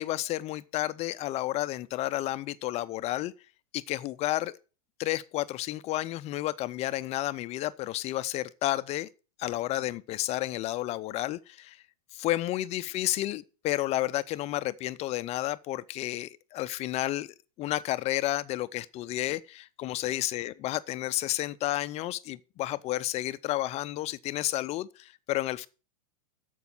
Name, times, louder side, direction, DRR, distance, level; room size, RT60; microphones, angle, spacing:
voice 1, 0.0-3.3 3.7-4.6 5.0-9.1 9.4-11.8 12.1-17.3 17.6-25.7, left 15 dB, 35° left, 0.5 m, -31 dB
13.5 x 5.4 x 6.0 m
hypercardioid pair, 105°, 19 cm